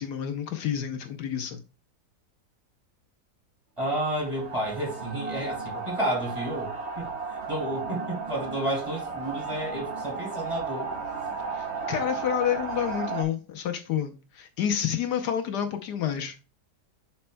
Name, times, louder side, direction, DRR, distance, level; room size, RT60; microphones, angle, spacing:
voice 1, 0.0-1.6 11.5-16.4, left 9 dB, 75° left, 1.3 m, -29 dB
voice 2, 3.8-10.9, right 1 dB, 15° right, 2.8 m, -31 dB
sound 1, 4.1-13.2, right 4 dB, 40° right, 1.4 m, -34 dB
11.0 x 4.3 x 2.2 m
omnidirectional pair, 1.8 m